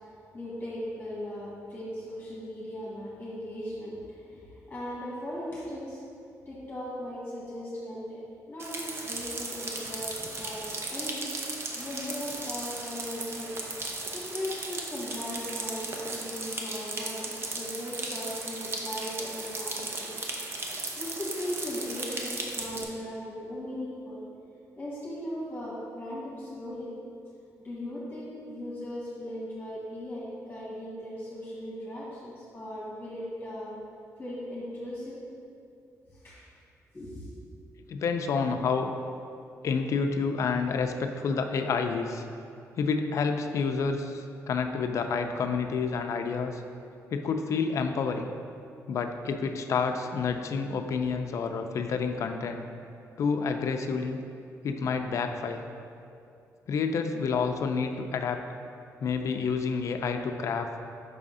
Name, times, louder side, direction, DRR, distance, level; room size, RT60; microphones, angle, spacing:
voice 1, 0.3-6.0 6.4-8.2 8.5-11.3 11.7-13.5 14.1-20.1 20.6-24.2 24.8-26.9 27.6-33.8 34.2-35.2 36.1-36.4 36.9-37.3, left 1 dB, 20° left, -7 dB, 1.4 m, -38 dB
sound 1, 8.6-22.8, right 2 dB, 40° right, 0.7 m, -36 dB
voice 2, 37.9-38.9 39.6-42.2 42.8-46.6 47.1-48.3 48.9-52.6 53.2-54.2 54.6-55.6 56.7-58.4 59.0-60.7, left 5 dB, 55° left, 6 dB, 0.4 m, -29 dB
5.4 x 3.6 x 5.4 m, 2.5 s
cardioid pair, 115°, 6 cm